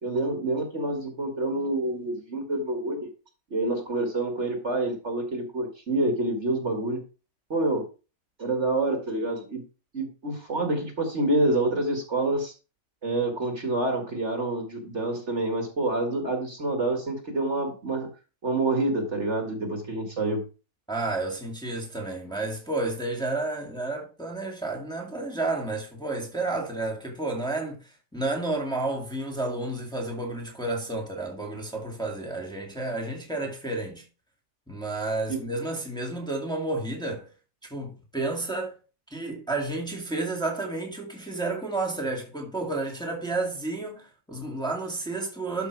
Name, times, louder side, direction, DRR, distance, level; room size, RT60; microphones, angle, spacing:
voice 1, 0.0-3.1 3.5-7.0 7.5-7.8 8.4-9.6 9.9-12.5 13.0-18.1 18.4-20.4 35.3-35.4, right 2 dB, 45° right, 2.2 m, -27 dB
voice 2, 20.9-27.8 28.1-34.0 34.7-37.3 37.7-38.7 39.1-45.7, right 2 dB, 5° left, 2.1 m, -31 dB
12.5 x 5.3 x 4.7 m
omnidirectional pair, 1.8 m